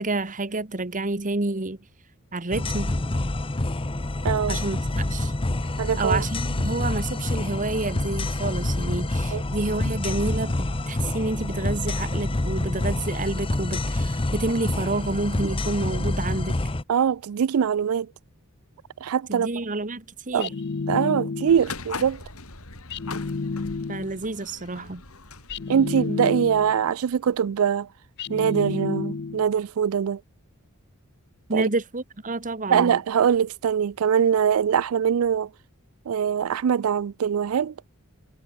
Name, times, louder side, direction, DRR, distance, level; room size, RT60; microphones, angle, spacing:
voice 1, 0.0-1.8 2.3-3.0 4.5-5.3 6.0-16.7 19.3-20.5 23.9-25.0 31.5-33.0, right 2 dB, 35° right, 1.6 m, -29 dB
sound 1, 2.5-16.8, left 2 dB, 25° left, 0.8 m, -27 dB
voice 2, 4.2-4.6 5.8-6.2 9.3-9.4 15.4-15.5 16.9-18.1 19.0-19.5 20.3-20.5 20.9-22.2 25.7-27.9 28.3-30.2 31.5-31.7 32.7-35.5 36.1-37.7, right 7 dB, 70° right, 0.4 m, -23 dB
sound 2, 20.4-21.8 22.9-24.2 25.5-26.9 28.2-29.6, left 4 dB, 50° left, 0.6 m, -30 dB
sound 3, 21.5-27.3, left 3 dB, 70° left, 5.3 m, -40 dB
head